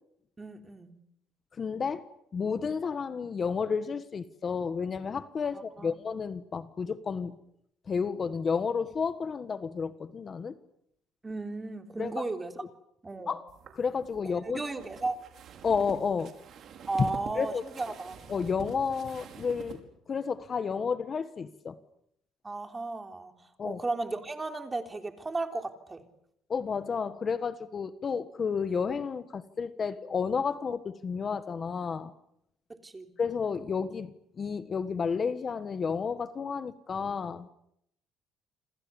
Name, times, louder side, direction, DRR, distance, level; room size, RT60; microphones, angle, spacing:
voice 1, 0.4-0.9 5.5-6.0 11.2-12.5 13.0-13.3 14.2-15.2 16.9-18.2 22.4-23.3 23.6-26.0 32.7-33.1, right 3 dB, 20° right, 6 dB, 3.5 m, -35 dB
voice 2, 1.6-2.0 2.3-7.4 7.9-10.5 12.0-12.1 12.6-12.7 13.3-13.4 13.7-14.6 15.6-16.3 17.0-17.6 18.3-19.8 20.1-21.8 23.6-23.8 26.5-32.1 33.2-37.5, left 5 dB, 35° left, 12 dB, 1.4 m, -31 dB
sound 1, 13.5-19.8, right 7 dB, 55° right, 5.5 m, -47 dB
28.5 x 26.5 x 7.1 m, 0.76 s
cardioid pair, 115°, 0 cm